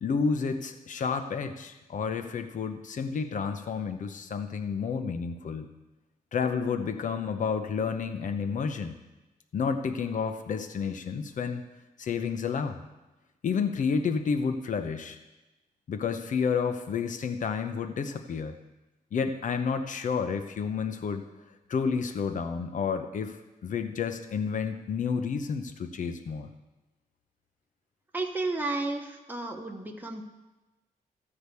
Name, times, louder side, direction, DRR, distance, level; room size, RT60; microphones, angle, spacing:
voice 1, 0.0-5.7 6.3-9.0 9.5-11.6 12.0-12.8 13.4-15.2 15.9-18.6 19.1-21.2 21.7-23.4 23.6-26.5, left 6 dB, 60° left, 8 dB, 0.8 m, -30 dB
voice 2, 28.1-30.2, right 2 dB, 10° right, 1 dB, 1.1 m, -32 dB
13.5 x 4.9 x 8.3 m, 1.1 s
wide cardioid pair, 140°, 15 cm